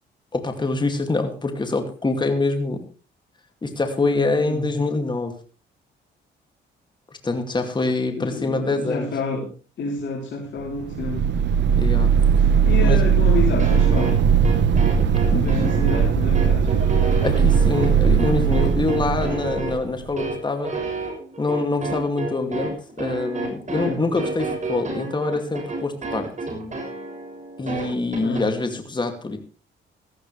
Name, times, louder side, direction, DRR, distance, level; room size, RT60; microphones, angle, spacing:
voice 1, 0.3-2.8 3.6-5.3 7.2-9.1 11.8-12.1 12.8-13.0 15.3-15.7 17.0-20.7 21.4-26.3 27.6-29.4, left 3 dB, 20° left, 5 dB, 2.4 m, -25 dB
voice 2, 4.0-4.7 8.1-9.5 9.8-11.2 12.3-14.3 15.0-15.1 15.3-17.1 23.7-24.0 28.2-28.5, left 3 dB, 65° left, -2 dB, 3.6 m, -29 dB
sound 1, 10.8-20.1, right 7 dB, 65° right, 1.1 m, -19 dB
sound 2, 13.6-28.4, right 3 dB, 35° right, 6.7 m, -30 dB
16.5 x 14.0 x 3.3 m, 0.36 s
cardioid pair, 90°, 20 cm